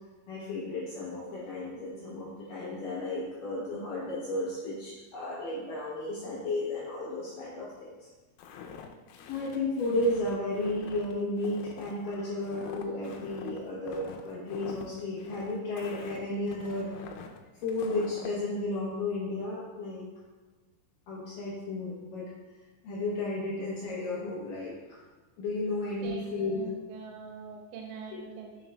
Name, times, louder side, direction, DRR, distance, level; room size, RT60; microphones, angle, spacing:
voice 1, 0.3-8.1 9.3-16.9 17.6-20.1 21.1-22.2 22.8-25.0 25.4-26.7, left 2 dB, 75° left, -6 dB, 2.0 m, -33 dB
Walk footsteps, 8.4-18.4, left 6 dB, 90° left, 2.8 m, -45 dB
voice 2, 25.7-28.6, right 5 dB, 85° right, 0 dB, 3.2 m, -44 dB
7.4 x 6.3 x 2.3 m, 1.2 s
omnidirectional pair, 5.0 m